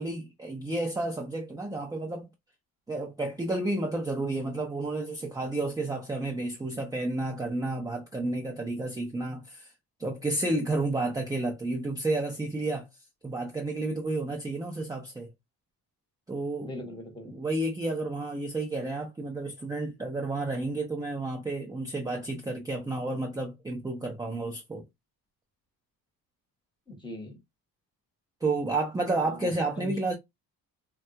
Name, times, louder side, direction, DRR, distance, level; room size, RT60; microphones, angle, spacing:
voice 1, 0.0-2.3 2.9-9.7 10.0-12.9 13.2-15.3 16.3-16.7 17.3-24.8 28.4-30.1, right 2 dB, 10° right, 0.4 m, -31 dB
voice 2, 16.6-17.3 26.9-27.4 29.1-30.0, left 1 dB, 10° left, 0.9 m, -40 dB
3.4 x 2.2 x 2.7 m
cardioid pair, 150°, 37 cm